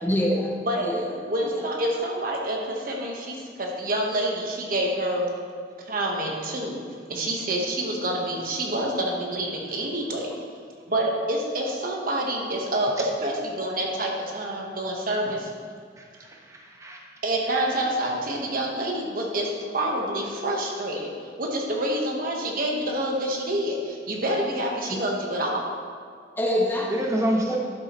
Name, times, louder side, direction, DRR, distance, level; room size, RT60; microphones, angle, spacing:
voice 1, 0.0-0.5 0.8-1.1 1.4-1.7 24.9-25.0 26.4-27.1 27.5-27.6, left 1 dB, 10° left, -1 dB, 0.7 m, -26 dB
voice 2, 0.7-5.3 5.9-6.8 7.1-10.3 10.9-15.5 17.2-21.1 21.4-25.6, right 1 dB, 50° right, 0 dB, 1.3 m, -27 dB
voice 3, 16.0-17.0 26.9-27.6, right 1 dB, 15° right, -1 dB, 1.0 m, -28 dB
11.5 x 7.1 x 3.1 m, 2.1 s
head